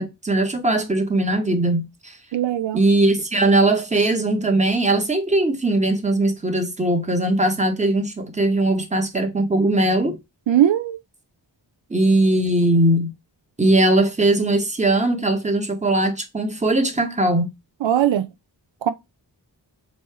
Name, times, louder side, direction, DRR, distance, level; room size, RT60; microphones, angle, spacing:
voice 1, 0.0-2.2 2.7-10.2 11.9-13.1 13.6-17.5, right 2 dB, 15° right, 0.9 m, -20 dB
voice 2, 2.3-2.8 10.5-11.0 17.8-18.3 18.8-18.9, right 11 dB, 80° right, 0.5 m, -19 dB
3.1 x 2.7 x 4.5 m
wide cardioid pair, 70°, 45 cm